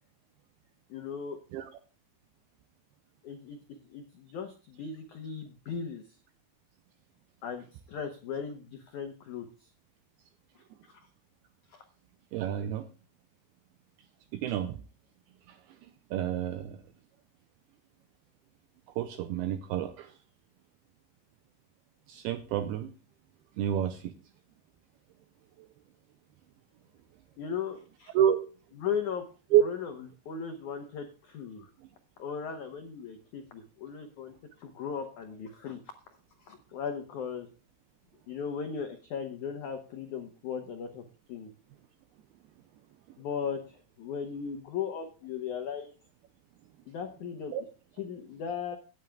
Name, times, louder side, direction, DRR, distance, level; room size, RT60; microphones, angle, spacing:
voice 1, 0.9-1.4 3.2-3.6 3.9-6.1 7.4-9.7 10.9-11.1 11.7-11.8 27.4-28.1 28.8-29.2 29.6-29.9 30.2-31.7 32.2-35.8 36.1-37.5 38.3-41.0 41.3-41.5 43.2-45.9 46.9-47.5 48.0-48.8, left 7 dB, 85° left, 5 dB, 1.7 m, -37 dB
voice 2, 12.3-12.9 14.3-14.8 15.5-15.6 16.1-16.8 19.0-20.1 22.1-22.9 23.6-24.1 28.1-28.4 29.5-29.6 47.5-47.6, right 10 dB, 85° right, 9 dB, 2.2 m, -28 dB
17.5 x 9.2 x 2.3 m, 0.35 s
omnidirectional pair, 5.2 m